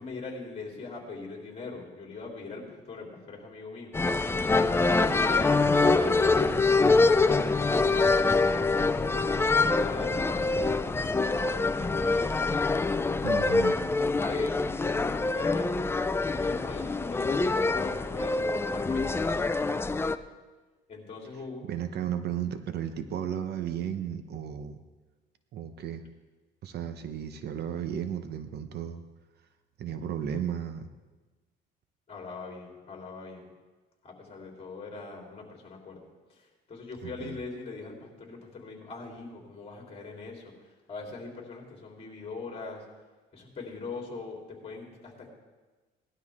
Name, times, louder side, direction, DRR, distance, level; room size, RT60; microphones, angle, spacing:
voice 1, 0.0-3.9 4.7-8.7 9.1-10.5 11.0-12.4 13.0-13.6 14.0-15.7 16.3-20.1 20.9-21.7 32.1-33.5 34.0-36.0 36.3-42.8 43.3-45.3, left 3 dB, 30° left, 0 dB, 3.5 m, -41 dB
sound 1, 3.9-20.2, left 3 dB, 10° left, 0.4 m, -25 dB
voice 2, 13.2-13.7 21.7-24.8 25.5-26.0 26.6-29.0 29.8-30.9 37.0-37.4, right 9 dB, 60° right, 9 dB, 0.9 m, -34 dB
18.5 x 12.0 x 3.6 m, 1.3 s
cardioid pair, 115°, 19 cm